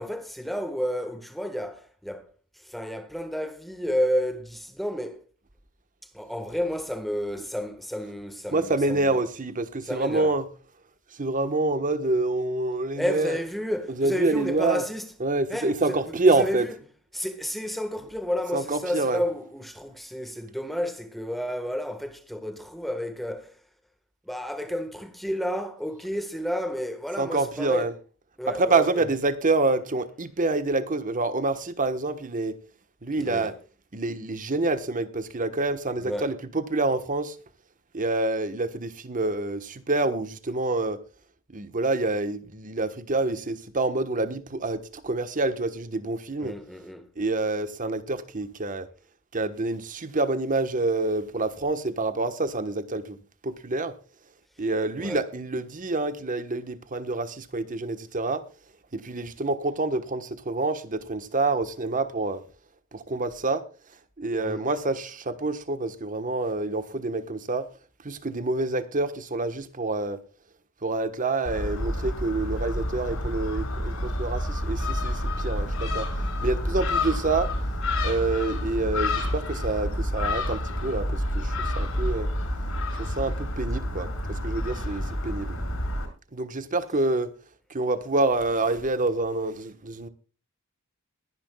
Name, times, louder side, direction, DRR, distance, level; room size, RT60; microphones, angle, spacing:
voice 1, 0.0-5.2 6.1-9.2 9.8-10.3 12.9-15.1 15.5-16.8 17.1-23.6 24.2-27.9 28.4-29.1 33.2-33.6 36.0-36.3 46.4-47.1 55.0-55.2 64.4-64.6 76.7-76.9, equal, ahead, 1.5 m, -31 dB
voice 2, 8.5-10.5 11.1-13.4 14.0-14.8 15.2-16.7 18.5-19.2 27.2-27.9 28.5-32.5 33.0-33.5 33.9-37.4 37.9-41.0 41.5-46.5 47.2-48.9 49.3-53.2 53.4-53.9 54.6-58.4 58.9-62.4 62.9-63.6 64.2-67.7 68.0-70.2 70.8-76.1 76.4-77.5 78.0-82.3 83.0-85.6 86.3-87.3 87.7-90.1, right 2 dB, 40° right, 1.2 m, -27 dB
Gull seagull, 71.5-86.1, left 1 dB, 70° left, 5.6 m, -29 dB
21.5 x 10.5 x 2.3 m
head